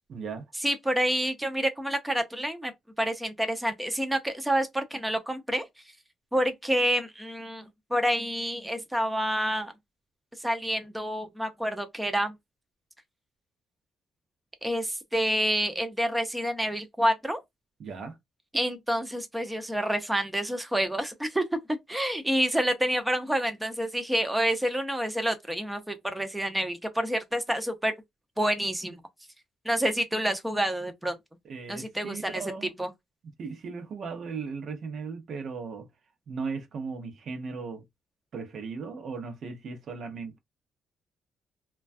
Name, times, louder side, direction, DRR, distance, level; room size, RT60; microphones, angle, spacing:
voice 1, 0.1-0.5 17.8-18.2 31.4-32.7 33.4-35.9 36.3-37.8 38.3-40.4, right 5 dB, 60° right, 0.7 m, -37 dB
voice 2, 0.6-2.7 3.0-5.6 6.3-7.6 7.9-9.7 10.4-12.3 14.6-17.4 18.5-21.4 21.9-27.9 28.4-29.0 29.6-31.2 31.7-32.4 32.8-32.9, equal, 5° right, 0.5 m, -28 dB
2.2 x 2.2 x 2.5 m
cardioid pair, 90°, 0 cm